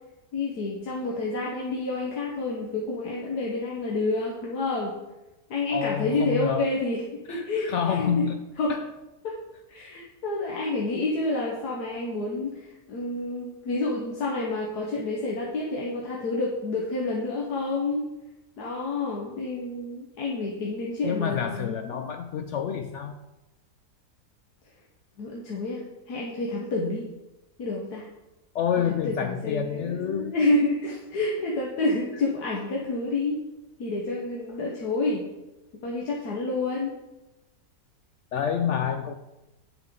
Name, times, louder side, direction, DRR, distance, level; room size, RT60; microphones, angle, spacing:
voice 1, 0.3-4.9 5.5-8.2 8.6-8.8 9.2-9.3 9.7-18.1 18.6-22.2 25.2-27.0 27.6-28.1 28.9-33.4 33.8-35.3 35.8-37.0, left 2 dB, 70° left, -2 dB, 1.6 m, -29 dB
voice 2, 5.7-6.7 7.3-8.4 8.7-8.9 21.0-23.2 28.5-30.3 38.3-39.1, left 8 dB, 90° left, 8 dB, 0.6 m, -28 dB
9.9 x 6.9 x 3.8 m, 1.0 s
omnidirectional pair, 1.8 m